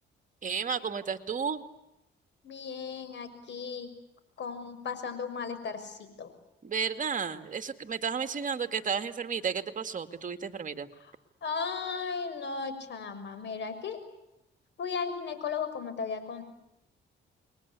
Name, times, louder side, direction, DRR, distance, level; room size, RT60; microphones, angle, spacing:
voice 1, 0.4-1.6 6.6-10.9, right 6 dB, 40° right, 8 dB, 2.3 m, -32 dB
voice 2, 2.4-3.9 4.4-6.3 11.4-14.0 14.8-16.4, left 5 dB, 65° left, 11 dB, 6.3 m, -35 dB
30.0 x 22.0 x 8.5 m, 0.86 s
cardioid pair, 90°, 20 cm